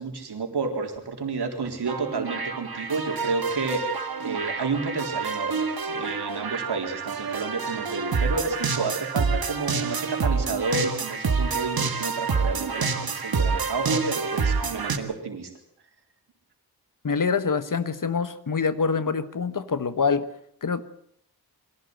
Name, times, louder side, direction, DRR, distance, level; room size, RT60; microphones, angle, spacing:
voice 1, 0.0-15.5, right 4 dB, 90° right, 4.0 m, -30 dB
sound 1, 1.9-15.0, right 5 dB, 70° right, 1.9 m, -28 dB
voice 2, 17.0-20.3 20.6-20.8, left 5 dB, 55° left, 1.4 m, -25 dB
23.0 x 16.0 x 8.0 m
wide cardioid pair, 80°, 38 cm